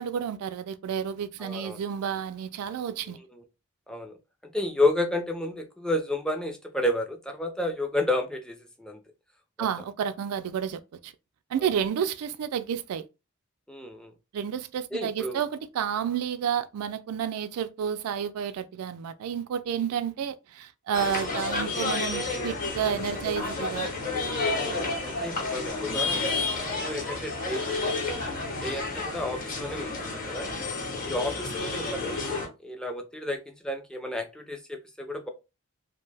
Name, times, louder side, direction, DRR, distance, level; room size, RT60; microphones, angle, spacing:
voice 1, 0.0-3.2 9.6-11.1 11.5-13.1 14.3-23.9, right 8 dB, 85° right, 0.3 m, -31 dB
voice 2, 1.4-1.8 3.2-3.4 3.9-4.2 4.5-9.0 11.6-11.7 13.7-14.1 14.9-15.4 23.3-23.4 23.7-23.8 25.0-27.9 28.6-30.5 31.0-35.3, left 1 dB, 5° left, 0.4 m, -31 dB
sound 1, 20.9-32.5, left 3 dB, 40° left, 0.8 m, -30 dB
2.6 x 2.2 x 3.2 m
head